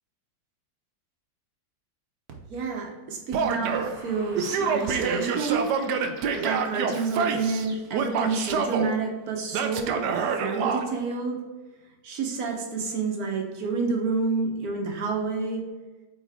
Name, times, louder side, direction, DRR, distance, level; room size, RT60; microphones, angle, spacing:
voice 1, 2.5-5.7 6.3-11.4 12.0-15.6, right 4 dB, 60° right, 1 dB, 1.5 m, -29 dB
Male speech man speaking / Yell, 3.3-3.9 4.4-7.6 7.9-8.9 9.5-10.8, right 6 dB, 75° right, 1.2 m, -27 dB
sound 1, 3.7-8.1, right 2 dB, 35° right, 1.3 m, -47 dB
8.2 x 3.8 x 3.5 m, 1.3 s
omnidirectional pair, 1.8 m